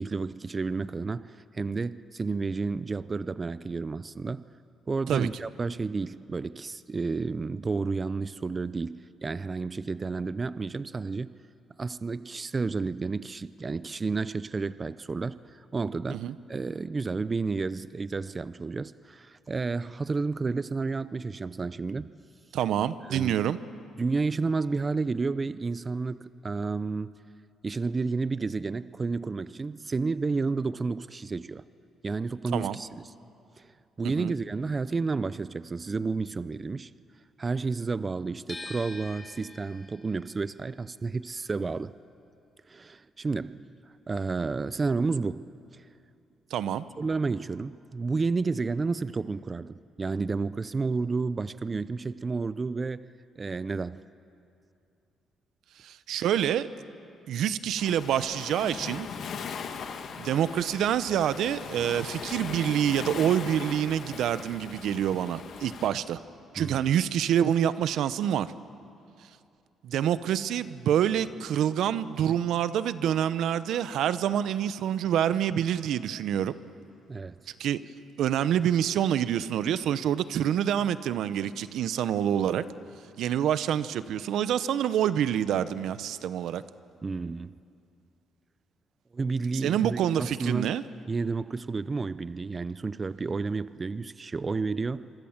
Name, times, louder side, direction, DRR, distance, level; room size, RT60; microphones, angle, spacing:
voice 1, 0.0-4.5 4.9-11.4 11.8-22.1 23.0-23.4 24.0-27.3 27.6-31.6 32.0-33.1 33.6-36.9 37.4-42.0 42.7-43.7 44.1-45.9 47.0-54.0 66.6-66.9 77.1-77.5 87.0-87.6 89.1-90.8 91.1-95.1, right 4 dB, 30° right, 0.5 m, -31 dB
voice 2, 22.5-23.6 32.5-32.8 34.0-34.3 46.5-46.8 55.8-56.7 57.3-59.1 60.2-66.2 66.5-68.5 69.8-76.5 77.6-77.8 78.2-82.6 83.2-86.6 89.6-90.8, right 10 dB, 80° right, 0.8 m, -27 dB
sound 1, 38.5-44.5 44.8-46.1, left 2 dB, 20° left, 3.1 m, -47 dB
Waves surf, 57.8-65.9, left 6 dB, 65° left, 2.0 m, -39 dB
26.0 x 24.5 x 7.3 m
cardioid pair, 90°, 0 cm